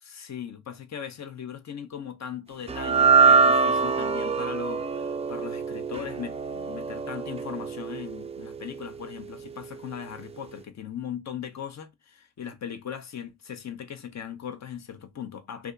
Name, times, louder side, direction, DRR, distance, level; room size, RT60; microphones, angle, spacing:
voice 1, 0.0-15.7, left 8 dB, 45° left, 0.9 m, -38 dB
sound 1, 2.7-9.1, right 5 dB, 15° right, 0.4 m, -24 dB
2.6 x 2.4 x 3.7 m
supercardioid pair, 65°, 39 cm